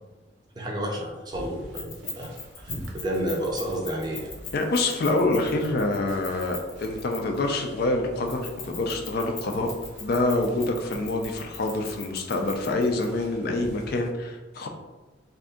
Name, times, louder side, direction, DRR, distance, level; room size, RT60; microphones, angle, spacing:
voice 1, 0.6-4.3, right 1 dB, 20° right, -1 dB, 0.5 m, -31 dB
sound 1, 1.3-14.1, right 1 dB, 80° right, 0.6 m, -45 dB
Keys jangling, 1.7-7.5 8.3-13.1, left 5 dB, 80° left, 0.8 m, -40 dB
voice 2, 4.5-9.7 10.0-14.7, left 2 dB, 55° left, 3 dB, 0.4 m, -26 dB
2.7 x 2.5 x 3.5 m, 1.2 s
head